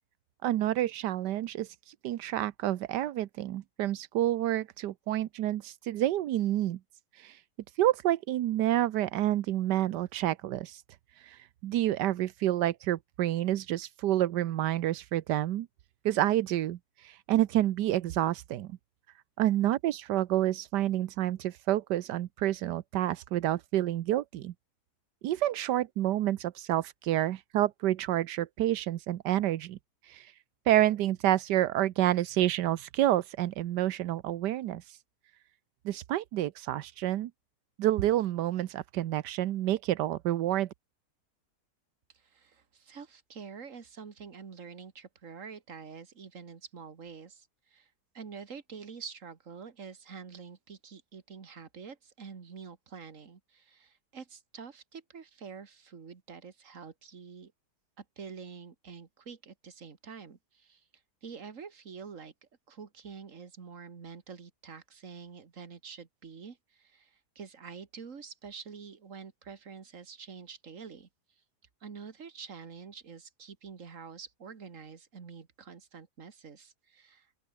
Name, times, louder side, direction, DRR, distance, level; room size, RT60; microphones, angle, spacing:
voice 1, 0.4-6.8 7.2-7.4 7.8-10.8 11.2-15.7 16.0-18.7 19.4-24.5 25.2-29.8 30.0-30.3 30.7-35.0 35.8-37.3 37.8-40.7, right 13 dB, 85° right, 1.4 m, -29 dB
voice 2, 42.1-57.5 58.0-60.9 61.2-62.3 62.7-71.1 71.8-77.3, right 6 dB, 50° right, 2.2 m, -47 dB
open air
omnidirectional pair, 1.8 m